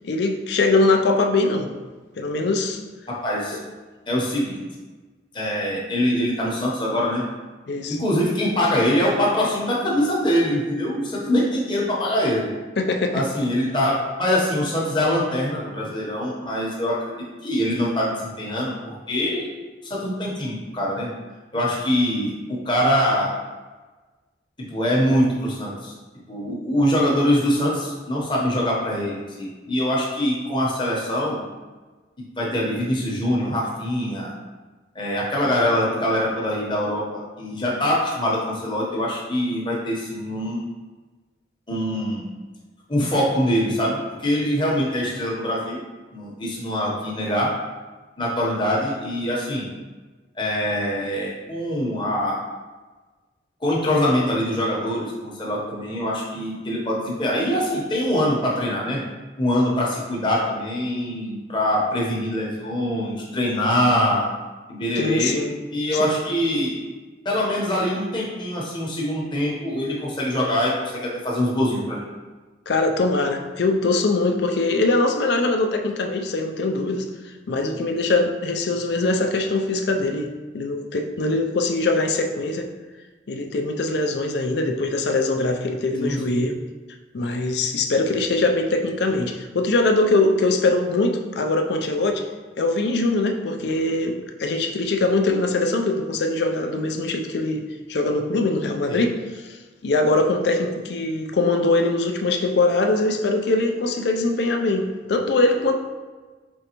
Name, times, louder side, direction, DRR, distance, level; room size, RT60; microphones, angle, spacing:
voice 1, 0.0-1.7 2.2-2.8 7.7-8.0 12.8-13.3 65.0-65.5 65.9-66.2 72.7-77.0 77.5-80.3 80.5-82.7 83.3-86.6 87.1-92.2 92.6-97.6 97.9-99.6 99.8-105.7, left 2 dB, 65° left, 4 dB, 0.4 m, -22 dB
voice 2, 3.1-3.6 4.1-4.6 5.3-7.2 7.9-12.5 13.1-17.0 17.4-19.5 19.8-21.1 21.5-23.3 24.7-25.9 26.3-31.4 32.2-34.3 34.9-40.6 41.7-42.3 42.9-45.8 46.1-47.5 48.2-49.6 50.4-52.4 53.6-59.0 59.4-64.2 64.7-65.3 65.7-66.8 67.2-72.0 86.0-86.4 98.9-99.0, equal, 25° left, -4 dB, 0.9 m, -23 dB
5.2 x 3.3 x 2.9 m, 1.3 s
head